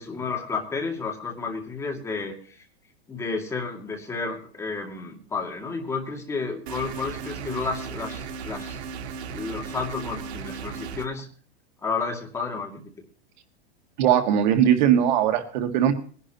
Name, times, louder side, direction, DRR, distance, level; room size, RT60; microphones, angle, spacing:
voice 1, 0.0-2.6 3.1-8.8 9.3-11.3 11.8-12.8, left 4 dB, 10° left, 1 dB, 2.2 m, -31 dB
sound 1, 6.7-11.1, right 6 dB, 90° right, 1.7 m, -36 dB
voice 2, 14.0-15.9, right 10 dB, 45° right, 5 dB, 2.1 m, -20 dB
21.5 x 11.5 x 3.0 m, 0.42 s
supercardioid pair, 170°, 32 cm